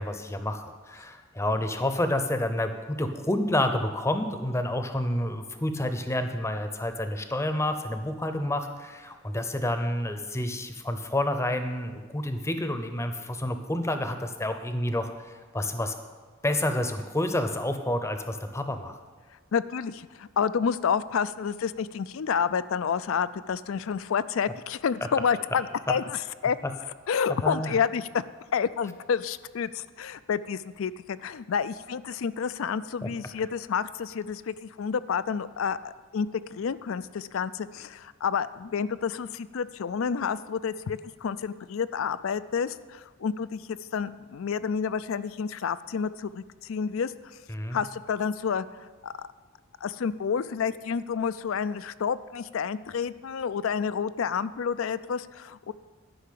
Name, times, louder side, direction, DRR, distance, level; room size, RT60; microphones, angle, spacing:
voice 1, 0.0-15.1 15.5-15.9 16.4-19.0 27.4-27.7 33.0-33.1 47.5-47.8, left 1 dB, 15° left, 7 dB, 0.7 m, -29 dB
voice 2, 19.5-26.6 27.1-28.2 28.5-47.4 47.7-49.3 49.8-55.7, left 6 dB, 70° left, 16 dB, 0.4 m, -29 dB
12.0 x 5.7 x 8.4 m, 1.4 s
head